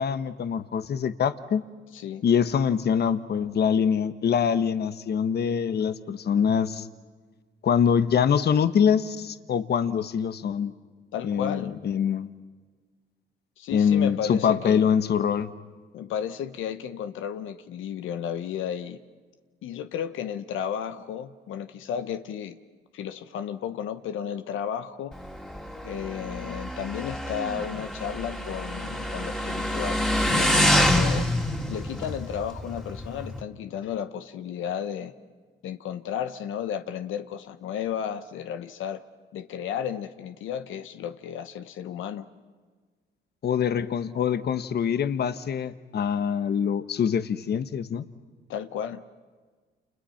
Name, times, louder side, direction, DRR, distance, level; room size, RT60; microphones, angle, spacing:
voice 1, 0.0-1.6 2.2-6.9 7.6-10.7 11.2-12.3 13.7-15.5 43.4-48.0, left 7 dB, 55° left, 12 dB, 1.2 m, -24 dB
voice 2, 1.9-2.2 11.1-11.8 13.6-15.0 15.9-19.0 19.6-22.6 22.9-25.1 25.8-31.3 31.7-35.1 35.6-39.0 39.3-42.3 48.5-49.0, left 9 dB, 80° left, 10 dB, 1.1 m, -33 dB
Motorcycle, 25.1-33.4, left 1 dB, 5° left, 2.5 m, -27 dB
29.5 x 29.0 x 5.8 m, 1.4 s
cardioid pair, 90°, 20 cm